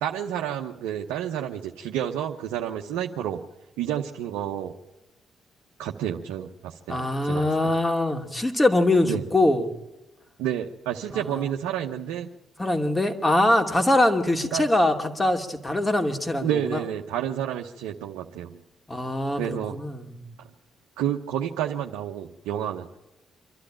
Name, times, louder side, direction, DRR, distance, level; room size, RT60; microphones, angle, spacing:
voice 1, 0.0-3.4 3.8-4.7 5.8-7.7 9.0-9.2 10.4-12.3 14.5-14.7 16.4-18.6 19.3-19.7 20.4-20.5 21.0-23.0, right 10 dB, 85° right, 1 dB, 0.9 m, -30 dB
voice 2, 6.9-9.7 11.1-11.4 12.6-16.8 18.9-20.3, left 1 dB, 20° left, 5 dB, 2.6 m, -23 dB
26.5 x 12.0 x 8.8 m, 0.98 s
supercardioid pair, 55°, 0 cm